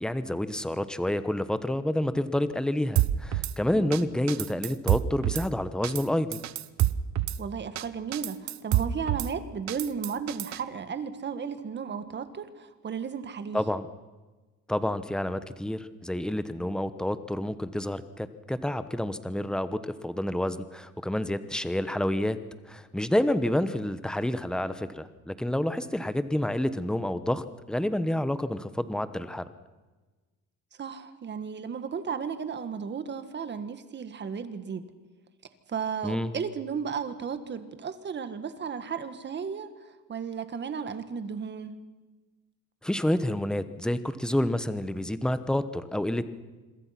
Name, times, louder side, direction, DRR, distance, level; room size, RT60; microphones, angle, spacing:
voice 1, 0.0-6.4 13.5-13.9 14.7-22.4 22.6-29.4 36.0-36.3 42.8-46.2, left 1 dB, ahead, 12 dB, 1.0 m, -29 dB
Drum kit / Snare drum, 3.0-3.5 3.9-4.0 4.3-5.5 5.8-6.0 6.3-7.4 7.8-7.9 8.1-9.3 9.7-10.6, right 13 dB, 60° right, 0.9 m, -27 dB
voice 2, 7.4-13.6 30.8-34.8 35.7-41.7, right 6 dB, 35° right, 11 dB, 1.8 m, -34 dB
26.5 x 22.5 x 6.0 m, 1.3 s
cardioid pair, 140°, 31 cm